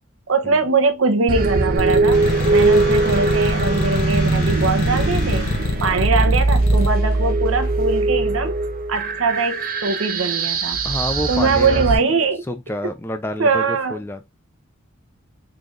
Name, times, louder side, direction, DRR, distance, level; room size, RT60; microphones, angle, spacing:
voice 1, 0.3-2.2 2.5-5.5 5.8-8.5 8.9-10.8 11.3-12.4 13.4-14.0, right 4 dB, 80° right, 0.8 m, -21 dB
sound 1, 1.3-12.0, right 3 dB, 45° right, 0.6 m, -20 dB
sound 2, 1.8-6.9, left 2 dB, 80° left, 1.0 m, -24 dB
sound 3, 2.1-6.0, left 2 dB, 40° left, 1.5 m, -32 dB
voice 2, 10.8-11.8 12.5-14.3, left 1 dB, 10° left, 0.4 m, -28 dB
3.9 x 3.2 x 2.4 m
head